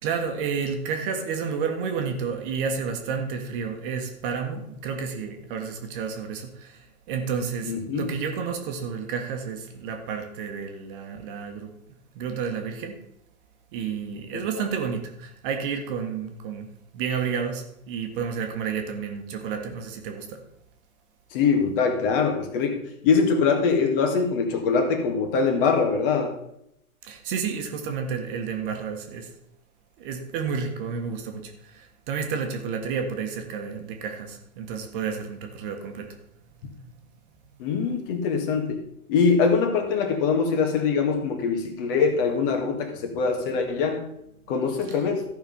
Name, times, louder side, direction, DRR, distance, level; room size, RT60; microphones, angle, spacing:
voice 1, 0.0-11.8 12.1-13.0 13.7-20.4 27.0-29.3 30.0-36.2 41.8-41.9 44.9-45.0, right 6 dB, 35° right, 1.5 m, -31 dB
voice 2, 7.6-8.0 14.3-14.6 21.3-26.3 37.6-38.8 39.1-44.0 44.5-45.3, left 5 dB, 35° left, 1.9 m, -23 dB
14.0 x 5.5 x 5.4 m
hypercardioid pair, 135°, 44 cm